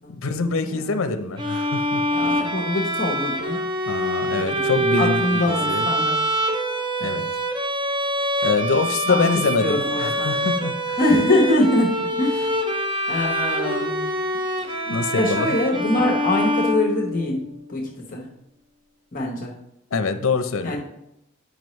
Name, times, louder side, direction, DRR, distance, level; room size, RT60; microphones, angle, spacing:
voice 1, 0.1-2.4 3.9-5.9 7.0-7.2 8.4-11.0 14.9-15.6 19.9-20.8, left 4 dB, 80° left, 9 dB, 0.6 m, -25 dB
voice 2, 0.6-1.0 2.1-3.7 4.4-6.2 7.0-7.2 9.1-9.3 9.6-10.4 11.0-12.7 13.1-14.2 14.6-14.9 15.1-18.3 19.1-19.5 20.6-20.8, left 1 dB, 40° left, -2 dB, 1.0 m, -24 dB
Bowed string instrument, 1.4-17.5, equal, 20° right, 0.5 m, -25 dB
9.4 x 4.9 x 3.1 m, 0.84 s
head